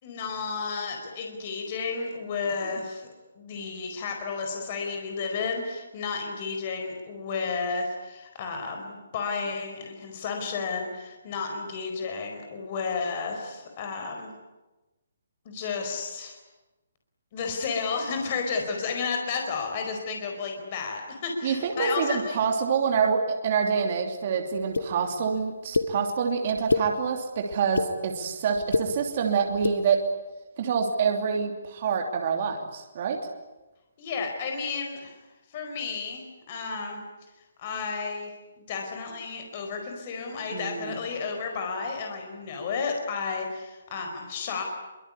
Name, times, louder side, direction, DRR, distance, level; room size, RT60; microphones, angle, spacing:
voice 1, 0.0-3.1 3.4-14.3 15.4-16.4 17.3-22.4 34.0-35.2 35.5-37.0 37.6-44.6, left 5 dB, 25° left, 3 dB, 4.6 m, -32 dB
voice 2, 21.4-30.0 30.6-33.2 40.5-40.9, right 6 dB, 25° right, 3 dB, 3.0 m, -26 dB
sound 1, 24.7-24.9 25.7-25.9 26.5-26.9 27.5-27.9 28.5-28.9 29.5-29.8, left 3 dB, 85° left, 1.8 m, -24 dB
25.0 x 24.0 x 9.8 m, 1.1 s
hypercardioid pair, 180°, 0 cm